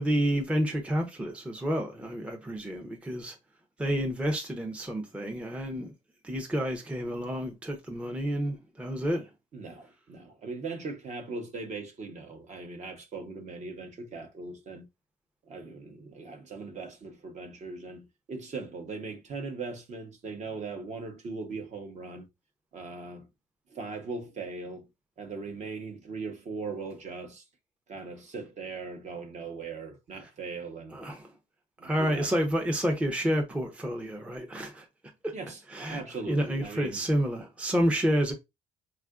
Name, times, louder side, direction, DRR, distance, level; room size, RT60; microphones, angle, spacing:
voice 1, 0.0-3.4 3.8-5.9 6.2-9.3 30.9-31.3 31.8-34.9 35.2-35.3 35.7-36.0 36.3-38.3, equal, 5° right, 0.5 m, -29 dB
voice 2, 9.5-14.9 15.5-22.3 22.7-23.3 23.7-24.9 25.2-27.4 27.9-31.0 31.8-32.3 35.3-37.0, right 4 dB, 45° right, 0.8 m, -39 dB
3.6 x 2.4 x 2.3 m
cardioid pair, 110°, 17 cm